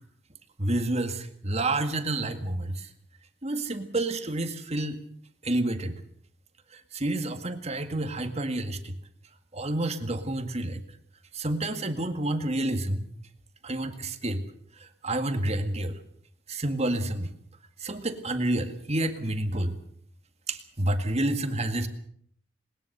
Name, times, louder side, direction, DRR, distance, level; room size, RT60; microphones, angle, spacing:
voice 1, 0.6-2.9 3.4-5.0 5.4-6.0 6.7-9.0 9.5-10.8 11.3-13.1 13.6-14.4 14.8-16.0 16.5-17.3 17.8-19.8 20.5-21.9, right 1 dB, 35° right, 8 dB, 1.9 m, -29 dB
20.5 x 20.0 x 6.8 m, 0.63 s
head